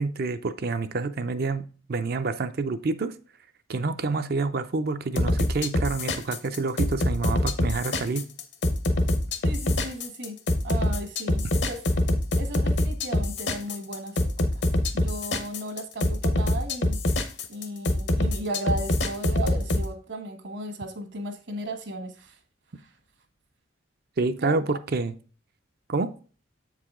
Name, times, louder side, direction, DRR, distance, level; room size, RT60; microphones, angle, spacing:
voice 1, 0.0-3.1 3.7-8.3 24.2-25.1 25.9-26.1, right 3 dB, 50° right, 10 dB, 0.5 m, -28 dB
sound 1, 5.1-19.8, left 1 dB, 60° left, 0.8 m, -24 dB
voice 2, 9.4-10.4 10.6-11.8 12.4-14.2 14.9-17.0 17.5-22.4 24.4-24.8, right 1 dB, 65° right, 6 dB, 1.3 m, -35 dB
7.6 x 4.9 x 3.6 m, 0.38 s
head